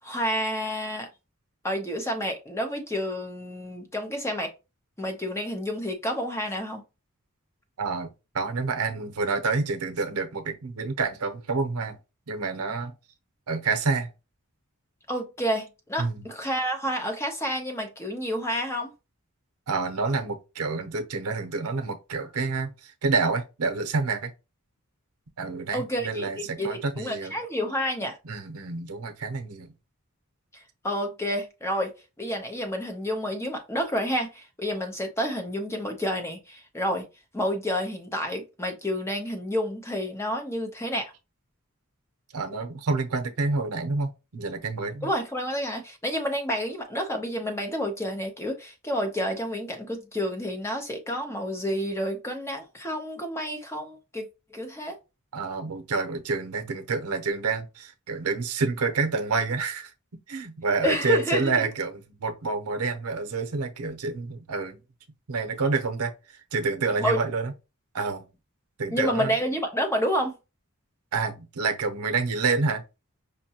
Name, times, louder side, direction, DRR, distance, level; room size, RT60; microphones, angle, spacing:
voice 1, 0.0-1.1 1.6-4.5 5.0-6.8 15.1-18.9 25.7-28.2 30.5-37.1 37.3-41.1 45.0-55.0 60.8-61.7 67.0-67.2 68.9-70.3, equal, 10° left, 0.6 m, -29 dB
voice 2, 7.8-8.1 8.3-11.9 12.3-12.9 13.5-14.1 16.0-16.2 19.7-24.3 25.4-27.4 28.2-29.7 42.3-45.1 55.3-59.9 60.3-64.8 65.3-66.1 66.5-67.5 67.9-68.2 68.8-69.3 71.1-72.8, right 4 dB, 90° right, 0.7 m, -28 dB
5.5 x 2.2 x 2.8 m
head